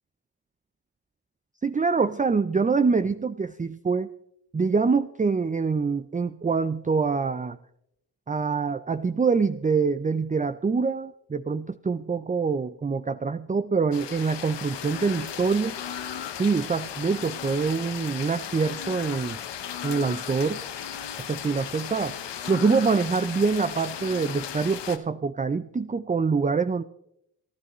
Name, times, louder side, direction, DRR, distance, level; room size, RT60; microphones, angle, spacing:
voice 1, 1.6-4.1 4.5-7.6 8.3-15.8 16.4-19.4 19.8-20.6 21.3-22.2 22.5-26.8, right 5 dB, 20° right, 12 dB, 0.5 m, -25 dB
sound 1, 13.9-25.0, left 9 dB, 85° left, 0.9 m, -36 dB
27.0 x 11.0 x 3.1 m, 0.77 s
cardioid pair, 50°, 41 cm